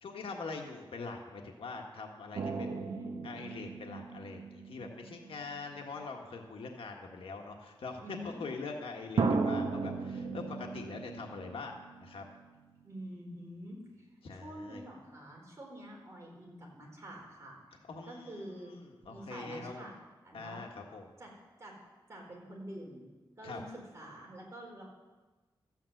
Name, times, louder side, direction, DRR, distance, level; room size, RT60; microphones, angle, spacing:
voice 1, 0.0-2.7 3.2-11.7 12.0-12.2 14.2-14.8 17.9-18.8 19.0-19.9 20.3-21.2 23.4-23.6, left 4 dB, 85° left, 2 dB, 1.6 m, -43 dB
sound 1, 2.4-6.3 7.2-7.3 9.2-12.5 12.8-12.9, right 4 dB, 75° right, 1.1 m, -36 dB
voice 2, 2.6-3.3 8.0-8.4 12.8-17.6 18.1-18.7 19.1-19.9 20.2-20.6 21.2-21.3 21.6-21.8 22.1-23.1 23.4-24.8, equal, 30° right, -2 dB, 4.1 m, -47 dB
13.5 x 9.1 x 7.9 m, 1.2 s
wide cardioid pair, 145°, 9 cm